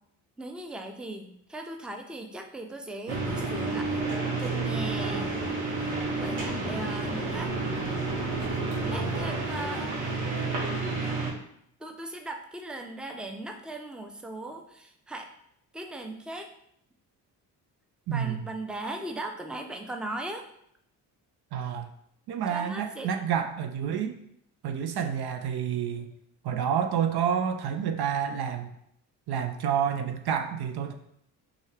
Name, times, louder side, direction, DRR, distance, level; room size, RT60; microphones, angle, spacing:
voice 1, 0.4-5.3 6.2-7.5 8.8-10.0 11.8-15.3 15.7-16.5 18.1-20.4 22.5-23.1, right 1 dB, ahead, 4 dB, 0.6 m, -38 dB
sound 1, 3.1-11.3, right 3 dB, 75° right, 1.2 m, -30 dB
voice 2, 18.1-18.4 21.5-21.9 22.3-24.2 24.6-26.1 26.4-28.7 29.3-30.9, right 8 dB, 55° right, 6 dB, 0.6 m, -29 dB
6.1 x 2.4 x 3.3 m, 0.72 s
hypercardioid pair, 50°, 49 cm